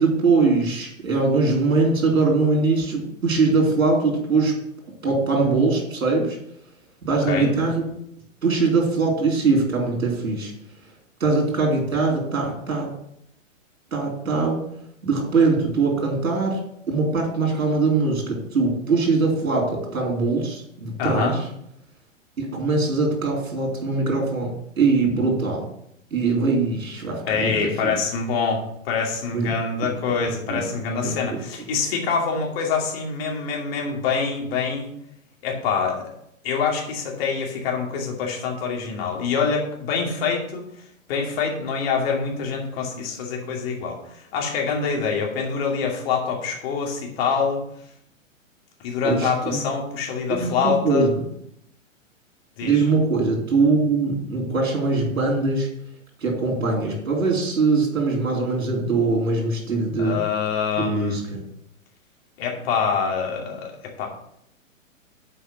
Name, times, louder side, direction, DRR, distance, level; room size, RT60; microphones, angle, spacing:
voice 1, 0.0-4.6 5.0-6.4 7.0-7.8 8.4-10.5 11.2-13.0 13.9-14.6 15.0-21.4 22.4-25.7 26.1-27.6 27.8-27.9 29.3-29.5 29.8-29.9 30.5-30.6 31.0-31.1 49.0-49.6 50.3-51.1 52.6-55.7 56.2-60.2 60.8-61.2, right 3 dB, 80° right, 0 dB, 3.6 m, -22 dB
voice 2, 7.1-7.5 21.0-21.4 27.3-34.9 35.4-36.1 36.4-40.6 41.1-47.6 48.8-51.1 52.6-52.8 60.0-61.2 62.4-64.1, left 5 dB, 45° left, 0 dB, 2.6 m, -25 dB
7.8 x 4.9 x 6.5 m, 0.74 s
hypercardioid pair, 120°, 40 cm